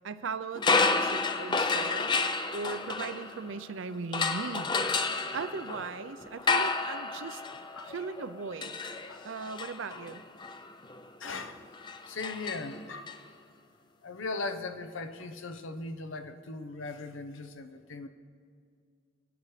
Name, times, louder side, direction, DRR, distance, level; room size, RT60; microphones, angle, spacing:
voice 1, 0.0-4.7 5.3-7.4 7.8-8.8 9.2-10.2, right 4 dB, 70° right, 12 dB, 0.6 m, -38 dB
sound 1, 0.6-3.7 4.1-13.1, left 4 dB, 20° left, 0.4 m, -31 dB
voice 2, 11.2-11.6 12.1-13.1 14.0-18.1, left 3 dB, 75° left, 8 dB, 0.8 m, -38 dB
26.0 x 10.0 x 3.3 m, 2.2 s
head